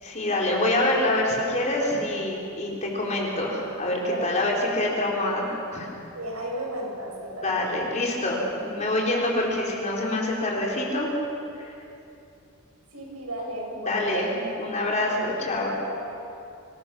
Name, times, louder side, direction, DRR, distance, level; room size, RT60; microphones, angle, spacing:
voice 1, 0.0-5.9 7.4-11.1 11.6-11.7 13.8-14.2 14.6-15.7, left 1 dB, 35° left, -2 dB, 4.4 m, -26 dB
voice 2, 4.0-4.5 6.1-7.5 9.0-9.1 12.9-14.9 15.7-16.0, right 1 dB, 80° right, -2 dB, 7.3 m, -34 dB
25.5 x 21.5 x 6.3 m, 2.7 s
head